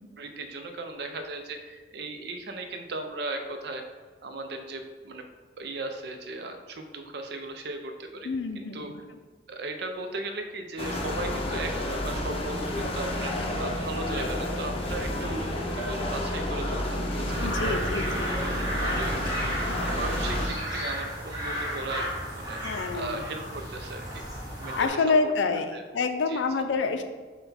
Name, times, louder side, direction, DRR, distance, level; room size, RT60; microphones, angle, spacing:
voice 1, 0.2-3.8 4.2-5.2 5.6-8.3 8.6-8.9 9.5-24.2 24.6-25.0 25.2-25.3 25.7-25.8 26.3-26.4, right 2 dB, 60° right, 5 dB, 0.5 m, -37 dB
voice 2, 8.2-9.0 17.4-18.3 22.6-23.2 24.8-27.0, left 4 dB, 80° left, 7 dB, 0.4 m, -27 dB
sound 1, 10.8-20.5, left 1 dB, 30° left, 0.6 m, -30 dB
sound 2, 17.3-24.9, equal, 25° right, 1.1 m, -33 dB
5.6 x 2.2 x 4.1 m, 1.4 s
head